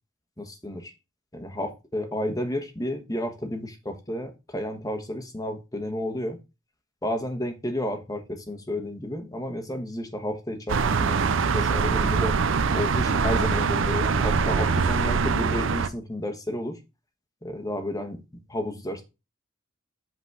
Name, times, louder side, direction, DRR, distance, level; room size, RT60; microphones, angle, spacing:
voice 1, 0.4-0.9 1.3-6.4 7.0-11.2 11.5-12.4 12.7-16.8 17.4-18.2 18.5-19.0, left 1 dB, 20° left, 6 dB, 1.2 m, -31 dB
sound 1, 10.7-15.9, right 5 dB, 65° right, 0.5 m, -23 dB
8.1 x 3.9 x 4.8 m, 0.27 s
head